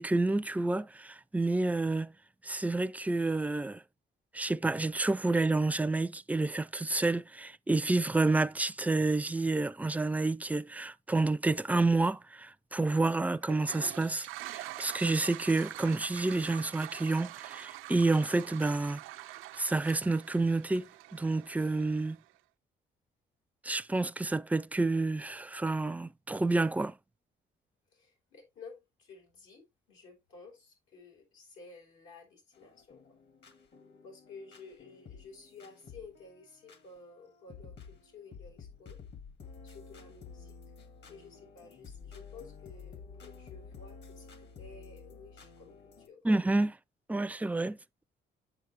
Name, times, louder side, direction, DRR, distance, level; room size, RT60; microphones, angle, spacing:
voice 1, 0.0-2.1 2.4-3.8 4.3-19.0 19.6-22.2 23.6-26.9 46.2-46.7 47.1-47.8, right 2 dB, 5° right, 0.4 m, -29 dB
Toilet flush, 13.4-22.3, right 16 dB, 90° right, 0.4 m, -45 dB
voice 2, 27.9-33.2 34.0-39.0 39.6-40.6 41.1-46.2, left 4 dB, 90° left, 5.0 m, -53 dB
sound 1, 32.5-46.1, left 5 dB, 60° left, 2.0 m, -51 dB
8.0 x 7.5 x 2.8 m
cardioid pair, 90°, 20 cm